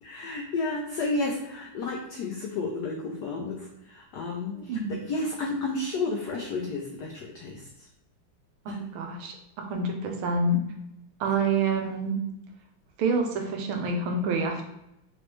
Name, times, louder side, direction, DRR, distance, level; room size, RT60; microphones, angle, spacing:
voice 1, 0.0-7.7 8.7-8.8, left 3 dB, 80° left, 0 dB, 0.9 m, -32 dB
voice 2, 4.5-4.9 8.6-10.6 11.2-12.2 13.0-14.7, right 3 dB, 80° right, 3 dB, 1.5 m, -27 dB
4.0 x 3.0 x 3.1 m, 0.86 s
omnidirectional pair, 2.4 m